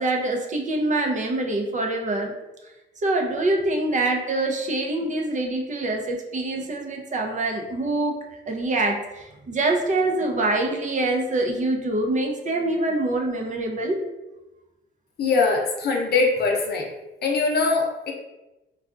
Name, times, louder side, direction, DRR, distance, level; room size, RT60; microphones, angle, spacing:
voice 1, 0.0-2.3 3.0-8.2 8.5-14.0, right 2 dB, 40° right, 2 dB, 0.5 m, -25 dB
voice 2, 15.2-16.9 17.2-18.1, left 4 dB, 55° left, 1 dB, 0.7 m, -22 dB
3.6 x 2.3 x 2.4 m, 1.0 s
cardioid pair, 90°, 20 cm